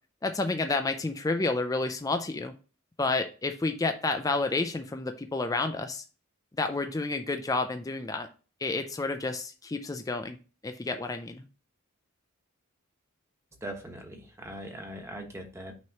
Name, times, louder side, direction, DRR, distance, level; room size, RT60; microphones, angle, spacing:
voice 1, 0.2-2.5 3.0-6.0 6.6-8.3 8.6-10.4 10.6-11.4, left 3 dB, 15° left, 6 dB, 0.4 m, -30 dB
voice 2, 13.6-15.8, right 1 dB, 15° right, 3 dB, 1.0 m, -40 dB
6.1 x 3.0 x 5.7 m, 0.34 s
head